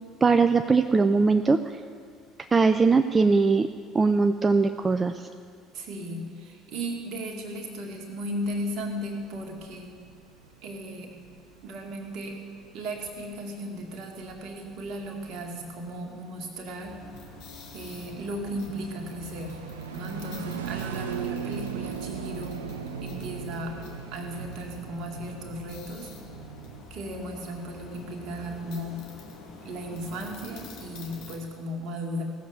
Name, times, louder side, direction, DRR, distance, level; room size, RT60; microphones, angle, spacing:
voice 1, 0.2-1.6 2.5-3.7 3.9-5.3, right 4 dB, 25° right, 8 dB, 0.5 m, -21 dB
voice 2, 5.7-9.9 10.6-11.1 11.6-12.4 12.7-17.0 17.7-19.6 19.9-22.6 23.0-23.8 24.1-26.1 26.9-29.0 29.6-32.2, equal, 60° right, 2 dB, 2.2 m, -36 dB
sound 1, 7.9-26.8, right 7 dB, 80° right, 0.7 m, -40 dB
sound 2, 16.8-31.4, left 4 dB, 65° left, 2.0 m, -47 dB
16.0 x 7.4 x 8.1 m, 2.1 s
hypercardioid pair, 60°, 0 cm